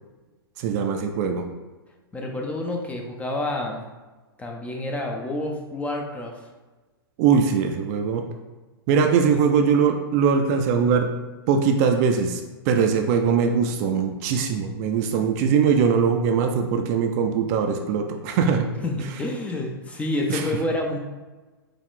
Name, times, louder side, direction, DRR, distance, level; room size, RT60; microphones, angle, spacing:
voice 1, 0.6-1.4 7.2-8.2 8.9-11.1 11.5-12.4 12.7-18.7 20.3-20.4, right 6 dB, 40° right, 5 dB, 0.4 m, -21 dB
voice 2, 2.1-3.8 4.4-6.3 18.8-21.0, left 1 dB, 10° left, 1 dB, 0.5 m, -28 dB
4.7 x 2.4 x 3.6 m, 1.2 s
hypercardioid pair, 120°, 13 cm